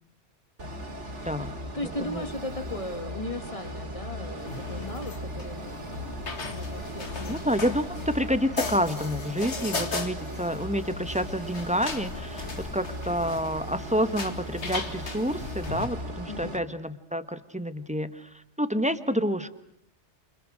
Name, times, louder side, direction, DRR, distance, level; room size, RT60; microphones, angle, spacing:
sound 1, 0.6-16.6, equal, 80° right, 3.2 m, -38 dB
voice 1, 1.5-7.4 16.3-16.6, left 1 dB, 30° left, 8 dB, 2.0 m, -37 dB
sound 2, 4.4-15.9, left 3 dB, 70° left, 2.3 m, -38 dB
voice 2, 7.3-18.3 18.6-19.5, equal, 5° right, 11 dB, 1.2 m, -28 dB
29.0 x 29.0 x 6.4 m, 0.72 s
omnidirectional pair, 1.2 m